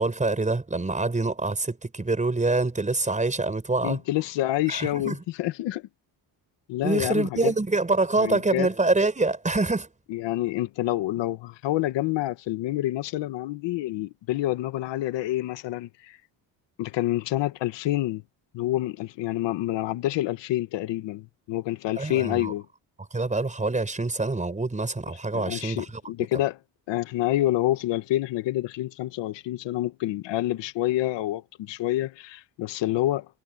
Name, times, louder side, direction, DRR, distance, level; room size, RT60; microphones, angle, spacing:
voice 1, 0.0-4.0 4.7-5.2 6.8-9.9 22.0-22.5 23.1-26.0, right 3 dB, 15° right, 5.5 m, -25 dB
voice 2, 3.8-5.8 6.7-7.5 8.2-8.7 10.1-16.2 16.8-18.2 18.5-22.6 25.3-26.5 26.9-33.3, left 15 dB, 85° left, 1.4 m, -27 dB
cardioid pair, 105°, 42 cm